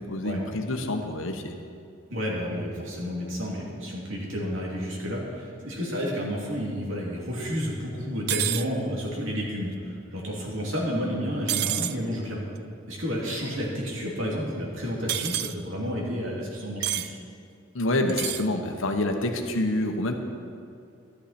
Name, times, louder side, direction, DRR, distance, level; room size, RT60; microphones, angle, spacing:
voice 1, 0.0-1.6 17.7-20.1, left 1 dB, 75° left, 4 dB, 1.1 m, -27 dB
voice 2, 2.1-12.4 12.9-17.2, equal, 75° right, -4 dB, 2.8 m, -31 dB
sound 1, 8.3-8.7 11.5-12.0 15.1-15.5 16.8-17.1 18.1-18.5, right 12 dB, 50° right, 0.3 m, -28 dB
12.5 x 11.5 x 4.3 m, 2.5 s
head